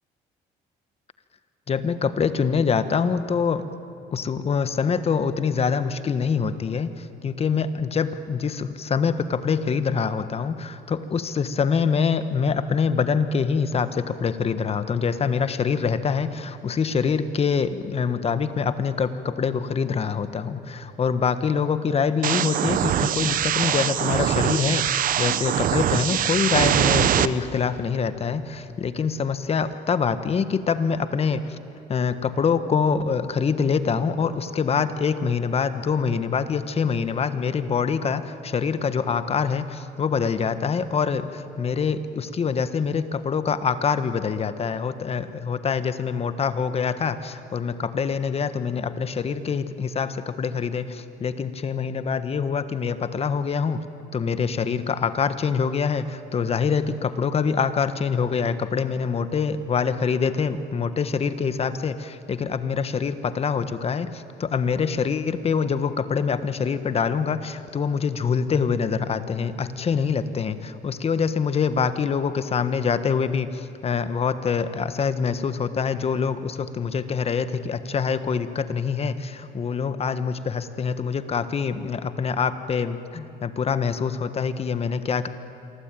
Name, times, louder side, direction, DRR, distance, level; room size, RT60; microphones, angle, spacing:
voice 1, 1.7-3.6 4.1-31.6 31.9-53.8 54.1-85.3, left 6 dB, 35° left, 11 dB, 1.3 m, -25 dB
sound 1, 22.2-27.3, right 10 dB, 55° right, 0.9 m, -22 dB
27.5 x 23.5 x 9.1 m, 2.9 s
cardioid pair, 110°, 17 cm